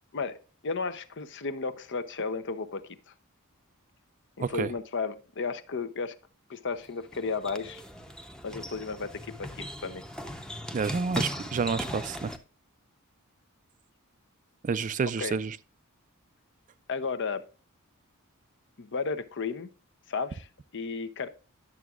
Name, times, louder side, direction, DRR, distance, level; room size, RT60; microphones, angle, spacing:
voice 1, 0.6-3.1 4.4-6.2 6.5-7.8 8.4-10.0 15.2-15.4 16.9-17.4 18.8-19.7 20.1-21.3, left 4 dB, 55° left, 0.7 m, -33 dB
sound 1, 6.7-12.4, equal, 5° left, 0.7 m, -38 dB
voice 2, 10.7-12.3 14.6-15.6, right 5 dB, 35° right, 0.4 m, -29 dB
11.0 x 7.0 x 2.4 m
head